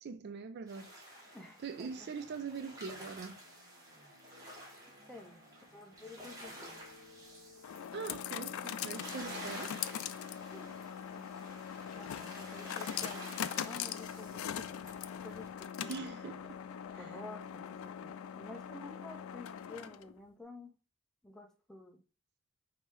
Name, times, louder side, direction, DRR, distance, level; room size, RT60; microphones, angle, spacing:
voice 1, 0.0-1.0 1.6-3.4 7.9-9.7 15.9-16.6 16.9-17.1, right 5 dB, 50° right, 0.4 m, -43 dB
sound 1, 0.7-15.5, equal, 15° right, 1.3 m, -51 dB
voice 2, 1.3-2.1 5.1-5.4 5.7-6.8 10.5-10.8 11.1-11.3 11.9-14.9 15.2-16.1 17.0-20.7 21.2-22.0, left 2 dB, 5° left, 0.6 m, -51 dB
sound 2, 1.9-19.4, equal, 85° right, 1.2 m, -68 dB
sound 3, 6.2-20.2, left 9 dB, 70° left, 0.3 m, -42 dB
5.2 x 2.8 x 3.2 m
head